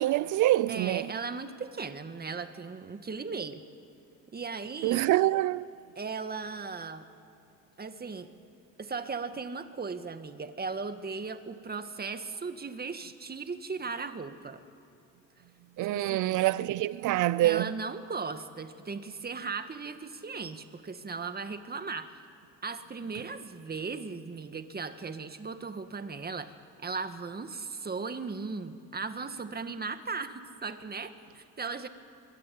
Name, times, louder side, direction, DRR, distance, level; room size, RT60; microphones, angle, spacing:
voice 1, 0.0-1.1 4.8-5.7 15.8-17.7, right 15 dB, 80° right, 0.6 m, -26 dB
voice 2, 0.7-3.6 4.3-5.0 6.0-7.0 7.8-8.3 8.8-14.6 15.9-16.4 17.4-22.2 22.6-26.5 26.8-31.9, right 4 dB, 30° right, 2.0 m, -37 dB
24.5 x 22.5 x 9.5 m
cardioid pair, 90°, 30 cm